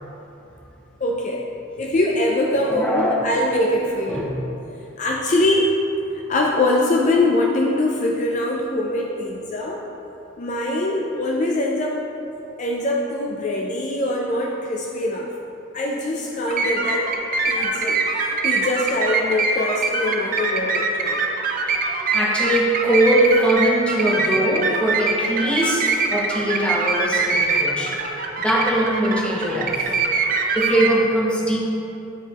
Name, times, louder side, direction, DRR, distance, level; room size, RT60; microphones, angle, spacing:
voice 1, 1.0-1.5 1.8-4.3 5.0-5.7 6.1-9.8 10.4-12.0 12.6-15.3 15.7-17.1 17.5-21.2, left 1 dB, 35° left, -1 dB, 0.4 m, -23 dB
voice 2, 2.6-3.3 4.1-4.3 21.7-28.0 28.4-30.0 30.5-31.6, right 1 dB, 5° left, -3 dB, 0.7 m, -21 dB
sound 1, 16.5-30.9, right 3 dB, 40° right, 0.5 m, -23 dB
9.0 x 4.8 x 2.9 m, 2.9 s
head